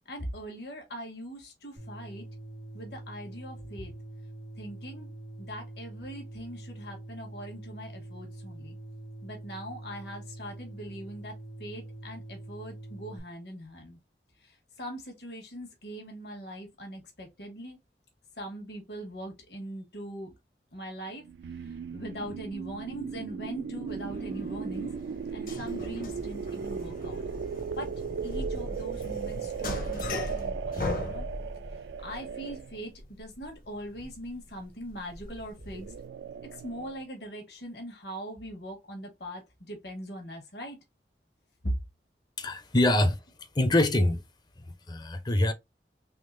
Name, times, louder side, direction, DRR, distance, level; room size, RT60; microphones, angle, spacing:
voice 1, 0.1-2.3 2.7-3.9 4.6-5.1 5.4-8.8 9.2-14.0 14.4-17.8 18.4-20.3 20.7-21.2 21.6-24.9 25.3-27.2 27.7-27.9 28.2-31.3 31.7-35.9 36.4-40.8 41.6-41.7, equal, 70° left, 1.3 m, -41 dB
sound 1, 1.8-13.2, right 2 dB, 85° left, 1.3 m, -44 dB
sound 2, 21.2-32.9 35.6-37.0, right 6 dB, 80° right, 0.3 m, -37 dB
sound 3, 23.9-36.0, left 2 dB, 50° left, 0.8 m, -39 dB
voice 2, 42.4-43.2 43.6-44.2 44.9-45.5, left 1 dB, 25° left, 0.5 m, -24 dB
3.6 x 3.2 x 2.5 m
head